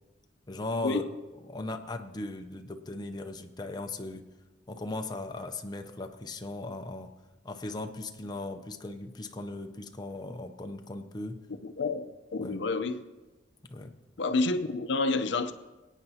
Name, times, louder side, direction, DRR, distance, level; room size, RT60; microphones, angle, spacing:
voice 1, 0.5-1.0 1.5-4.3 4.7-7.1 7.4-11.4 12.4-12.6 13.7-13.9, left 2 dB, 20° left, 0.6 m, -38 dB
voice 2, 11.6-13.0 14.2-15.5, left 3 dB, 70° left, 0.6 m, -29 dB
24.5 x 9.0 x 2.8 m
head